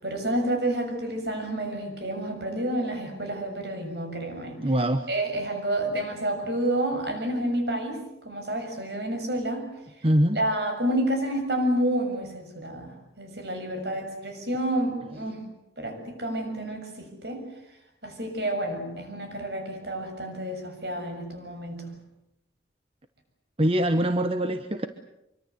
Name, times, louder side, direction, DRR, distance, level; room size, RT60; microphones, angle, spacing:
voice 1, 0.0-4.6 5.1-9.6 10.3-15.4 15.8-17.4 18.0-21.9, right 1 dB, 65° right, 5 dB, 7.1 m, -29 dB
voice 2, 4.6-5.0 10.0-10.4 23.6-24.9, right 1 dB, 30° right, 8 dB, 1.1 m, -23 dB
25.5 x 24.0 x 8.1 m, 0.85 s
head